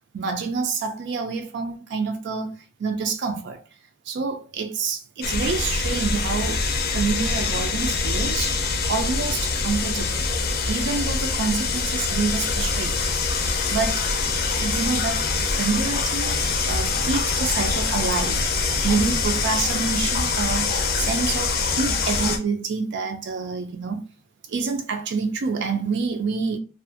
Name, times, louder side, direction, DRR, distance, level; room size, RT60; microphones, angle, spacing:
voice 1, 0.1-2.5 2.8-3.6 4.1-6.7 6.9-10.3 10.7-13.1 13.7-14.1 14.4-18.4 18.8-24.0 24.5-26.6, right 4 dB, 65° right, 0.4 m, -27 dB
sound 1, 5.2-22.4, left 4 dB, 55° left, 0.5 m, -24 dB
2.6 x 2.4 x 2.5 m
head